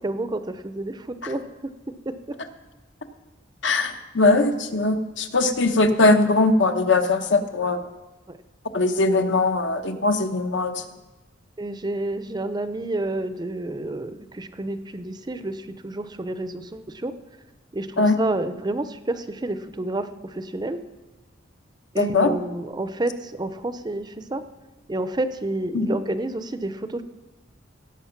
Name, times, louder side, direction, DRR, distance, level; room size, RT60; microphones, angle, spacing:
voice 1, 0.0-1.5 2.1-2.4 8.3-8.4 11.6-17.1 17.7-20.8 21.9-24.4 24.9-27.0, right 2 dB, 20° right, 11 dB, 0.5 m, -29 dB
voice 2, 3.6-7.8 8.7-10.8 18.0-18.2 22.0-22.3 25.7-25.9, left 2 dB, 65° left, 7 dB, 1.0 m, -20 dB
17.0 x 7.9 x 5.9 m, 1.1 s
head